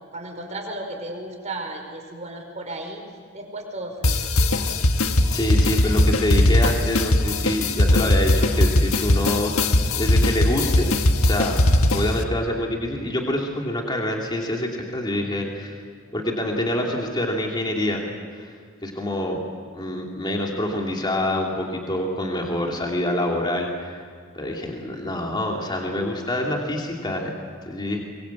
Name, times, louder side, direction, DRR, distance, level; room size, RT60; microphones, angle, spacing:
voice 1, 0.0-3.0 3.3-4.3, right 2 dB, 35° right, 2 dB, 5.3 m, -34 dB
sound 1, 4.0-12.2, left 1 dB, 85° left, 1.5 m, -19 dB
voice 2, 5.3-10.9 11.2-11.6 11.9-15.8 16.1-18.0 18.4-18.5 18.8-19.4 19.7-23.9 24.3-27.3 27.7-28.0, left 1 dB, 20° left, 0 dB, 2.9 m, -26 dB
24.0 x 23.5 x 8.4 m, 2.2 s
head